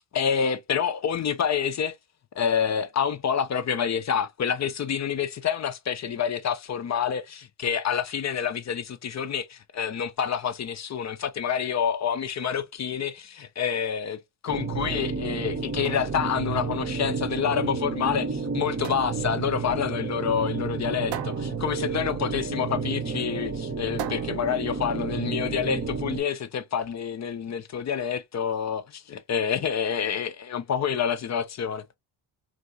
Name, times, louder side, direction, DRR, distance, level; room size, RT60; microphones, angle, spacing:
voice 1, 0.1-2.0 2.3-31.8, left 7 dB, 35° left, 0.5 m, -28 dB
sound 1, 14.5-26.2, right 4 dB, 25° right, 0.7 m, -31 dB
sound 2, 15.6-25.6, right 10 dB, 65° right, 0.6 m, -43 dB
3.6 x 2.6 x 2.6 m
cardioid pair, 80°, 47 cm